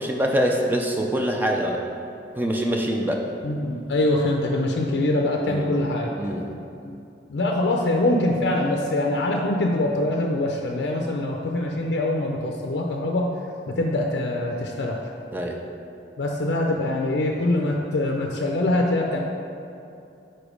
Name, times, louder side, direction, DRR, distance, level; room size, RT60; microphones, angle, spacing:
voice 1, 0.0-1.8 2.4-3.3 5.4-5.7 6.2-6.5 15.3-15.6, equal, 10° right, 1 dB, 0.4 m, -24 dB
voice 2, 3.4-6.1 6.8-7.0 7.3-13.3 13.7-15.0 16.2-19.2, left 1 dB, 65° left, 0 dB, 0.4 m, -24 dB
5.0 x 4.4 x 5.0 m, 2.7 s
head